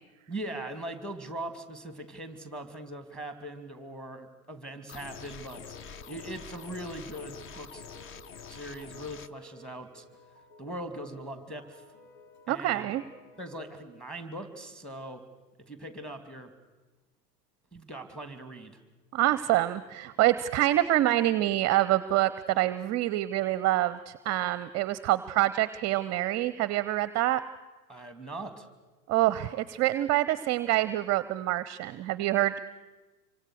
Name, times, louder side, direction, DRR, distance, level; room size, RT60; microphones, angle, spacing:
voice 1, 0.3-5.8 6.1-7.8 8.5-10.0 10.6-11.8 12.5-13.0 13.4-15.2 15.6-16.5 17.7-18.8 27.9-28.7, right 1 dB, ahead, 9 dB, 2.8 m, -40 dB
sound 1, 4.9-9.3, left 6 dB, 25° left, 0.8 m, -45 dB
sound 2, 5.7-13.8, left 2 dB, 60° left, 6.1 m, -55 dB
voice 2, 12.5-13.0 19.1-27.4 29.1-32.6, right 15 dB, 35° right, 16 dB, 0.7 m, -26 dB
27.0 x 24.0 x 6.6 m, 1.2 s
figure-of-eight pair, 90°, 48 cm